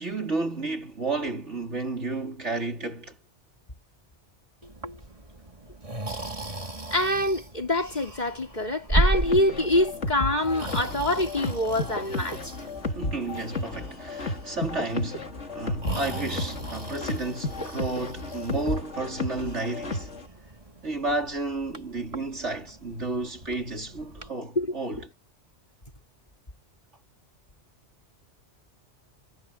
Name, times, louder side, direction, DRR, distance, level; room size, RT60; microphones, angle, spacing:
voice 1, 0.0-3.2 12.8-15.3 15.5-20.1 20.8-25.1, right 2 dB, 80° right, 4.3 m, -32 dB
Breathing, 4.6-24.3, right 1 dB, 30° right, 2.7 m, -36 dB
voice 2, 6.9-12.6 24.6-24.7, left 1 dB, 40° left, 4.1 m, -25 dB
sound 1, 9.0-20.2, left 2 dB, 85° left, 3.1 m, -33 dB
omnidirectional pair, 1.2 m